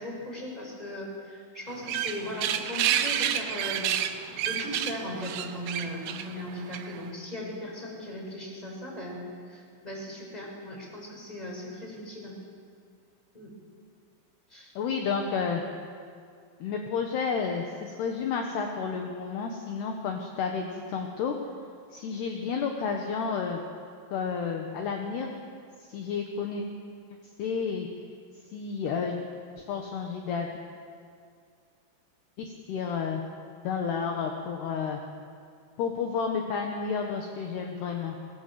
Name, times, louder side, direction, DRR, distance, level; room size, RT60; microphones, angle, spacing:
voice 1, 0.0-9.2 9.5-12.4 13.3-13.5 14.5-14.7, left 1 dB, 10° left, -1 dB, 6.3 m, -38 dB
sound 1, 1.7-7.1, right 10 dB, 80° right, 2.2 m, -30 dB
voice 2, 14.8-15.6 16.6-21.3 21.9-23.6 24.1-25.3 25.9-26.6 27.4-27.9 28.5-29.2 29.6-30.5 32.4-33.2 33.6-35.0 35.8-38.2, left 6 dB, 65° left, 2 dB, 3.2 m, -31 dB
26.0 x 22.5 x 7.7 m, 2.2 s
omnidirectional pair, 5.7 m